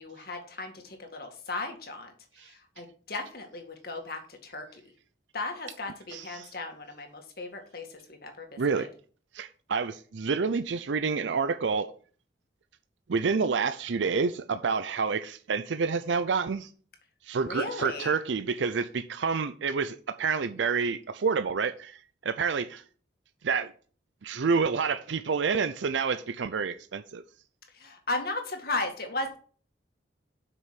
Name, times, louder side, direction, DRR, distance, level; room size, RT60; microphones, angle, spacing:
voice 1, 0.0-2.1 2.5-4.8 5.3-8.9 17.4-18.1 27.7-29.4, left 2 dB, 55° left, 1.9 m, -36 dB
voice 2, 6.1-6.5 8.6-8.9 9.3-11.9 13.1-16.7 17.2-22.8 23.4-23.7 24.2-27.2, right 5 dB, 80° right, 0.5 m, -28 dB
7.8 x 6.1 x 5.7 m
head